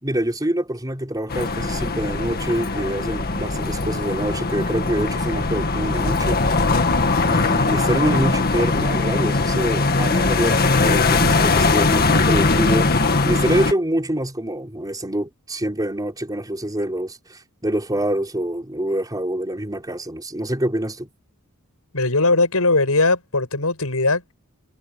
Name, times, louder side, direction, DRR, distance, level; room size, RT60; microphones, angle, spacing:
voice 1, 0.0-6.6 7.3-21.1, right 1 dB, 15° right, 4.4 m, -26 dB
sound 1, 1.3-13.7, left 3 dB, 45° left, 1.9 m, -20 dB
voice 2, 21.9-24.3, left 3 dB, 80° left, 6.8 m, -19 dB
head